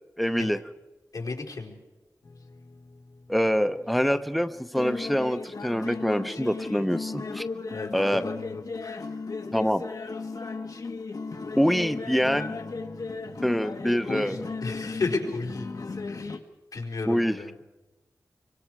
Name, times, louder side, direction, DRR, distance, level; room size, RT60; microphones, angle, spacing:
voice 1, 0.2-0.6 3.3-7.5 7.9-8.3 9.5-9.8 11.6-12.6 13.4-14.5 17.0-17.4, equal, ahead, 10 dB, 0.8 m, -25 dB
voice 2, 1.1-1.7 7.7-7.9 8.2-8.5 8.8-9.0 14.1-14.4 14.6-15.7 16.1-16.3 16.7-17.5, left 3 dB, 90° left, -1 dB, 4.5 m, -33 dB
sound 1, 2.2-16.4, left 4 dB, 70° left, 1.6 m, -36 dB
24.5 x 24.0 x 4.8 m, 1.1 s
wide cardioid pair, 60°, 6 cm